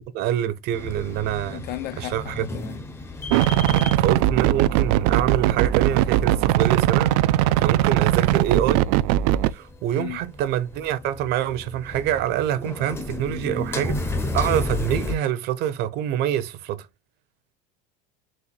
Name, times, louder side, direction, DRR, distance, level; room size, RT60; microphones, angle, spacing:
voice 1, 0.1-1.6 2.0-2.5 4.0-7.2 7.6-8.9 9.5-16.9, right 11 dB, 50° right, 0.8 m, -26 dB
sound 1, 0.7-15.2, left 2 dB, 10° left, 0.7 m, -33 dB
voice 2, 1.5-2.8 3.7-4.0 9.9-10.2, left 14 dB, 50° left, 0.6 m, -35 dB
sound 2, 3.3-9.5, right 14 dB, 70° right, 0.4 m, -20 dB
4.4 x 2.6 x 4.1 m
supercardioid pair, 135°, 21 cm